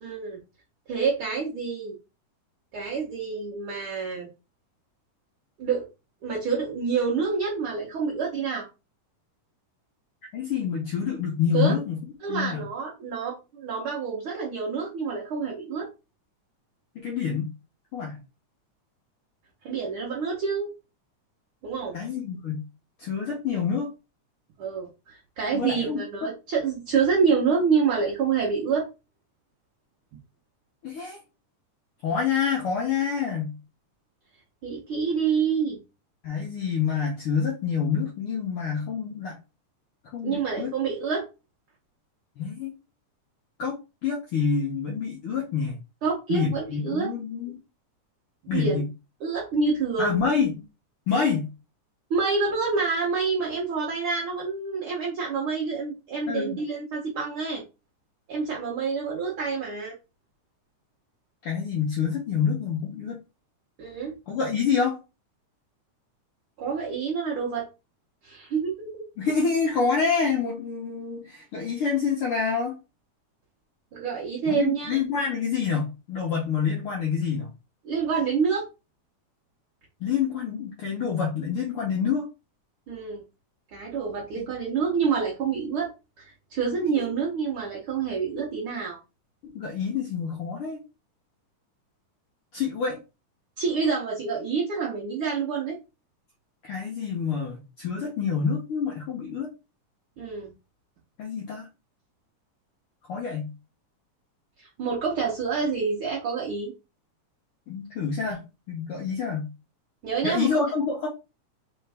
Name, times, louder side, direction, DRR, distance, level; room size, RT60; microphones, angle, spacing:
voice 1, 0.0-0.4 0.9-2.0 2.7-4.3 5.6-5.9 6.2-8.7 11.5-11.8 12.2-15.9 19.6-20.7 21.6-22.0 24.6-28.9 34.6-35.8 40.2-41.2 46.0-47.1 48.5-48.8 49.2-50.2 52.1-57.6 58.3-59.9 63.8-64.1 66.6-67.7 68.2-69.0 73.9-74.9 77.8-78.6 82.9-83.2 83.7-85.9 86.2-89.0 93.6-95.8 100.2-100.5 104.6-106.7 110.0-110.5, right 5 dB, 75° right, 1.2 m, -27 dB
voice 2, 10.3-12.0 12.3-12.6 16.9-17.5 17.9-18.2 21.9-22.6 23.0-23.9 25.5-26.3 30.8-31.2 32.0-33.5 36.2-39.4 40.1-40.7 42.4-42.7 43.6-45.8 46.3-47.6 48.5-48.8 50.0-50.7 51.1-51.5 56.3-56.6 61.4-63.2 64.3-65.0 69.2-72.8 74.5-77.5 80.0-82.3 84.4-84.5 89.4-90.8 92.5-93.0 96.6-99.5 101.2-101.7 103.1-103.5 107.7-109.5 110.2-111.1, left 6 dB, 70° left, 1.3 m, -27 dB
4.4 x 3.5 x 3.3 m
omnidirectional pair, 3.6 m